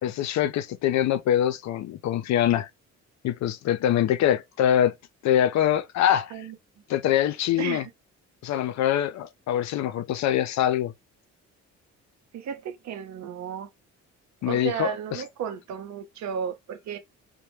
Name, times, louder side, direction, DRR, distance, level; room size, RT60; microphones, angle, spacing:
voice 1, 0.0-2.7 3.2-4.9 5.2-6.3 6.9-7.8 8.4-10.9 14.4-15.2, left 11 dB, 65° left, 0.4 m, -24 dB
voice 2, 7.6-7.9 12.3-13.7 14.5-17.0, right 8 dB, 65° right, 0.6 m, -33 dB
2.1 x 2.1 x 2.9 m
cardioid pair, 90°, 30 cm